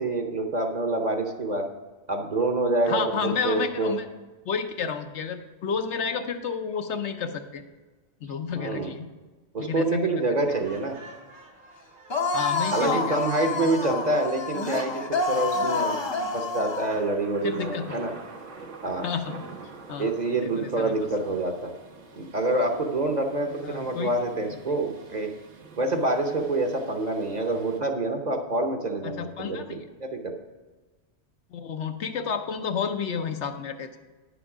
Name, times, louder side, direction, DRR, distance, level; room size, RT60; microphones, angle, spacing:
voice 1, 0.0-1.7 2.1-3.9 8.6-8.9 9.5-11.0 12.7-18.1 18.8-19.1 20.0-21.7 22.2-25.3 25.8-30.3, right 2 dB, 40° right, 4 dB, 0.9 m, -27 dB
voice 2, 2.8-4.1 4.4-7.6 8.2-9.1 9.6-10.0 12.3-13.9 17.4-17.9 19.0-19.4 19.9-20.1 20.4-20.9 23.6-24.2 29.0-29.8 31.5-33.9, left 6 dB, 75° left, 7 dB, 1.0 m, -31 dB
Laughter, 10.3-14.4, right 2 dB, 65° right, 1.7 m, -49 dB
sound 1, 12.1-17.0, left 3 dB, 30° left, 0.6 m, -28 dB
Thunder, 16.9-27.8, right 3 dB, 85° right, 1.5 m, -46 dB
10.0 x 7.1 x 4.8 m, 1.3 s
omnidirectional pair, 1.2 m